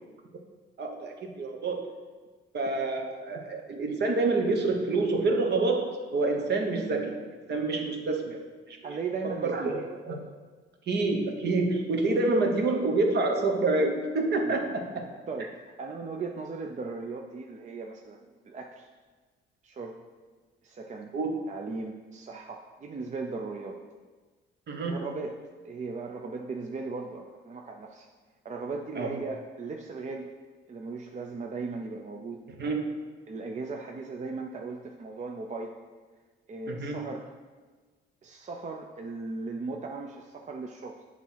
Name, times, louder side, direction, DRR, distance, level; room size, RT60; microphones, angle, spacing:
voice 1, 0.8-1.9 2.5-7.2 7.5-8.4 8.7-9.0 9.2-10.3 10.9-15.1 21.1-21.4 24.7-25.1 28.9-29.2 32.6-33.0 36.7-37.1, right 3 dB, 60° right, 3 dB, 1.1 m, -28 dB
voice 2, 8.8-9.7 14.4-14.6 15.3-18.9 19.6-20.0 20.6-21.1 21.5-23.8 24.8-25.4 25.6-28.1 28.4-30.3 30.7-32.4 33.3-35.8 36.5-37.3 38.2-41.0, right 4 dB, 35° right, 2 dB, 0.6 m, -37 dB
8.1 x 3.1 x 5.7 m, 1.4 s
cardioid pair, 90°, 20 cm